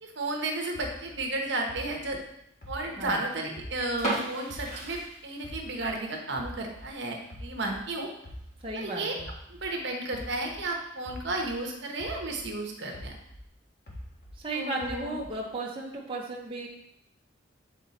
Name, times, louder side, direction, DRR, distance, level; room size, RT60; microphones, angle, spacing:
voice 1, 0.0-2.2 2.7-8.1 8.8-9.2 9.6-13.1 14.5-15.1, right 2 dB, 65° right, 1 dB, 1.1 m, -33 dB
sound 1, 0.7-4.1 4.5-6.9 7.3-11.6 12.0-14.4 14.8-15.5, equal, 50° left, 1.6 m, -45 dB
voice 2, 3.0-3.5 8.6-9.3 14.4-16.7, right 2 dB, 25° right, -3 dB, 0.9 m, -35 dB
sound 2, 4.0-5.8 6.1-6.2 6.8-7.0 7.4-7.5 7.7-7.8 8.6-8.9, right 2 dB, 35° left, 2.3 m, -34 dB
8.2 x 4.0 x 4.2 m, 0.77 s
head